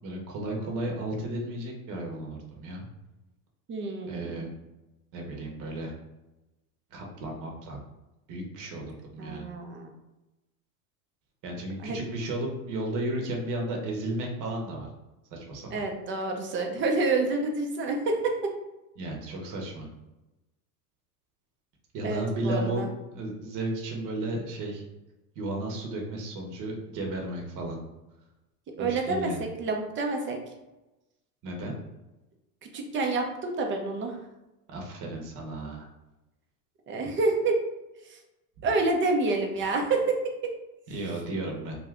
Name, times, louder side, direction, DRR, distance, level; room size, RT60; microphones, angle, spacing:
voice 1, 0.0-2.8 4.1-4.5 5.1-5.9 6.9-7.8 8.3-9.5 11.4-14.9 15.3-15.8 19.0-19.9 21.9-22.9 23.1-24.8 25.4-27.8 28.8-29.4 31.4-31.7 34.7-35.9 40.9-41.7, right 1 dB, 40° right, 0 dB, 0.9 m, -34 dB
voice 2, 3.7-4.4 9.2-9.9 11.8-12.0 15.7-18.5 22.0-22.9 28.8-29.3 29.6-30.4 32.7-34.2 36.9-37.6 38.1-38.2 38.6-40.5, right 3 dB, 25° right, 3 dB, 0.5 m, -28 dB
2.6 x 2.4 x 3.3 m, 1.0 s
hypercardioid pair, 100°, 47 cm